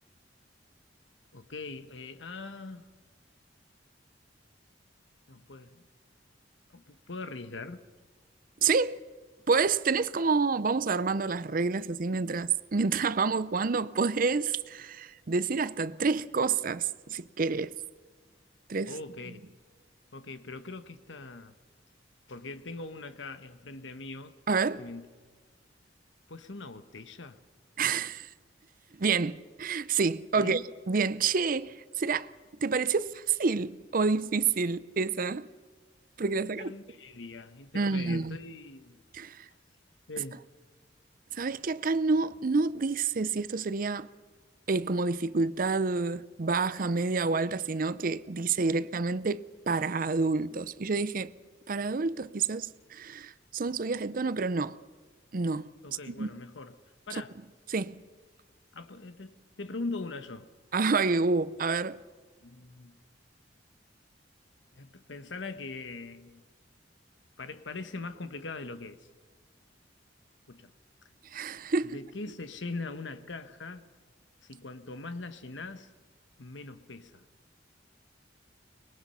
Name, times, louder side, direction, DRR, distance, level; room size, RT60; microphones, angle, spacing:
voice 1, 1.3-2.9 5.3-5.8 6.7-7.8 18.9-19.4 20.1-21.5 22.3-24.3 24.8-25.1 26.3-27.4 30.3-30.6 36.4-39.0 40.1-40.5 55.8-56.8 57.1-57.4 58.7-60.5 62.4-63.0 64.7-66.4 67.4-69.1 70.5-70.7 71.8-73.9 74.4-75.9 76.4-77.2, left 3 dB, 80° left, 1.2 m, -41 dB
voice 2, 8.6-8.9 9.5-17.7 18.7-18.9 24.5-24.8 27.8-28.3 29.0-30.6 30.9-32.3 32.6-35.5 36.2-36.7 37.7-38.4 39.1-39.5 41.3-44.1 44.7-51.3 51.7-54.8 55.3-55.7 56.1-56.3 57.7-58.0 60.7-62.0 71.3-72.0, right 4 dB, 45° right, 0.6 m, -28 dB
24.0 x 20.5 x 5.6 m
head